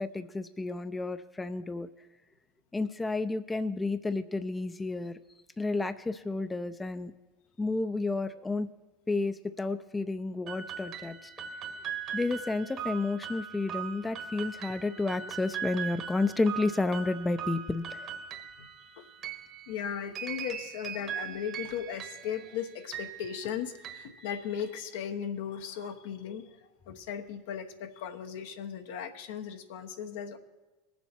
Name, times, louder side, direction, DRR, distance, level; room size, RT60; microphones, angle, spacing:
voice 1, 0.0-1.9 2.7-5.2 5.6-7.1 7.6-8.7 9.1-11.3 12.1-18.1, left 3 dB, 15° left, 11 dB, 0.5 m, -31 dB
sound 1, 10.5-24.9, right 8 dB, 45° right, 1.4 m, -40 dB
voice 2, 19.7-26.6 26.9-30.4, left 8 dB, 75° left, 6 dB, 1.0 m, -37 dB
20.0 x 7.2 x 4.4 m, 1.2 s
hypercardioid pair, 95°, 0 cm